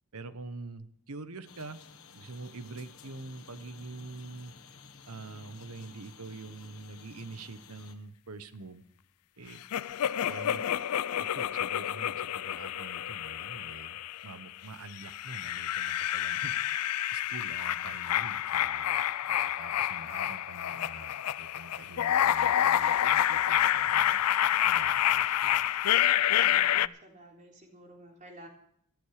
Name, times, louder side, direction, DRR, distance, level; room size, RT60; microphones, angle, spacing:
voice 1, 0.1-1.8 2.1-4.5 5.1-8.8 9.4-9.6 10.3-10.6 11.2-19.0 19.3-25.7, right 3 dB, 75° right, 12 dB, 1.0 m, -45 dB
sound 1, 1.4-7.9, left 5 dB, 65° left, 1.5 m, -53 dB
sound 2, 9.7-14.4 15.0-26.9, left 11 dB, 90° left, 0.4 m, -28 dB
voice 2, 26.3-28.5, right 1 dB, 35° right, 0 dB, 3.7 m, -52 dB
14.5 x 13.5 x 4.9 m, 0.68 s
head